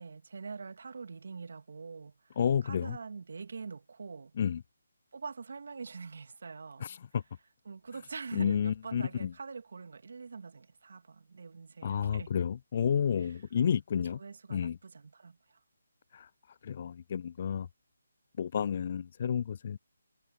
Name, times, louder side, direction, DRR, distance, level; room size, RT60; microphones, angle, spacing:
voice 1, 0.0-2.4 2.6-4.3 5.1-6.9 7.7-12.3 14.0-15.6, right 4 dB, 65° right, 2.7 m, -44 dB
voice 2, 2.4-3.0 4.4-4.6 6.8-7.2 8.3-9.3 11.8-14.2 14.5-14.8 16.1-16.3 16.6-17.7 18.4-19.8, left 8 dB, 45° left, 0.3 m, -31 dB
figure-of-eight pair, 155°, 0 cm